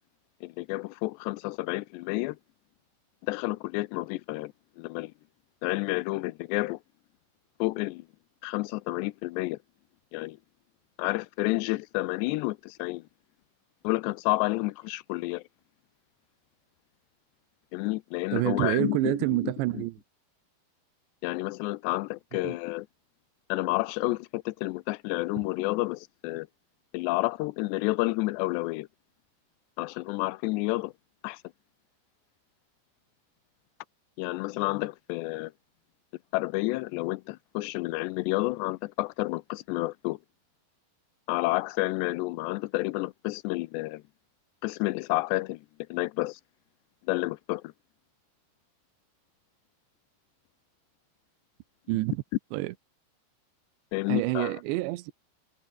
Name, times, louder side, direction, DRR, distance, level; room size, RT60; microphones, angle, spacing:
voice 1, 0.4-2.4 3.2-5.1 5.6-6.8 7.6-8.1 8.4-9.6 10.1-10.4 11.0-13.0 13.8-15.4 17.7-19.2 19.4-19.5 21.2-22.9 23.5-26.5 26.9-28.9 29.8-30.9 31.2-31.4 34.2-35.5 36.3-40.2 41.3-44.0 44.6-45.6 45.9-46.4 47.1-47.7 53.9-54.6, left 21 dB, 85° left, 2.8 m, -30 dB
voice 2, 18.3-19.9 22.4-22.5 51.9-52.2 52.5-52.7 54.1-55.1, right 19 dB, 90° right, 3.1 m, -27 dB
omnidirectional pair, 5.0 m